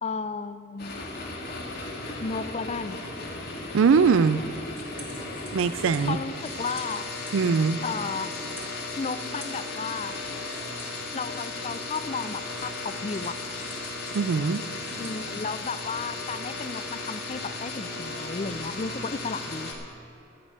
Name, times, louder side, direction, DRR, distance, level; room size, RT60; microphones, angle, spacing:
voice 1, 0.0-1.0 2.2-3.0 6.0-7.1 7.8-8.3 9.0-10.1 11.1-13.5 15.0-19.7, left 4 dB, 30° left, 13 dB, 0.4 m, -33 dB
sound 1, 0.8-19.7, left 2 dB, 55° left, 1.8 m, -36 dB
voice 2, 3.7-4.4 5.5-6.2 7.3-7.8 14.1-14.6, right 5 dB, 85° right, 14 dB, 0.4 m, -21 dB
sound 2, 4.7-16.0, right 1 dB, 10° right, 1.6 m, -50 dB
14.5 x 5.3 x 9.6 m, 2.9 s
head